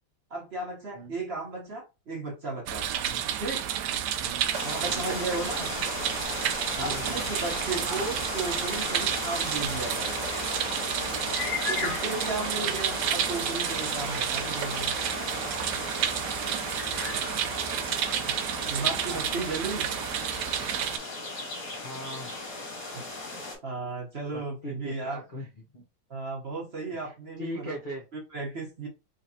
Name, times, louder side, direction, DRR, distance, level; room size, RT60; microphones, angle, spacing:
voice 1, 0.3-2.9 3.4-3.6 4.6-5.7 6.7-10.3 11.7-14.9 18.3-19.9 22.9-23.3 23.6-25.2 26.1-27.7 28.1-28.9, right 3 dB, 40° right, -1 dB, 0.9 m, -35 dB
sound 1, 2.7-21.0, right 10 dB, 75° right, 1.0 m, -31 dB
sound 2, 4.5-23.6, left 3 dB, 45° left, 2.0 m, -35 dB
voice 2, 6.8-7.4 7.8-8.0 18.7-19.2 21.8-22.4 24.3-25.5 25.7-25.8 26.9-28.1, left 1 dB, 80° left, -1 dB, 0.4 m, -40 dB
3.9 x 3.1 x 2.7 m, 0.27 s
omnidirectional pair, 2.2 m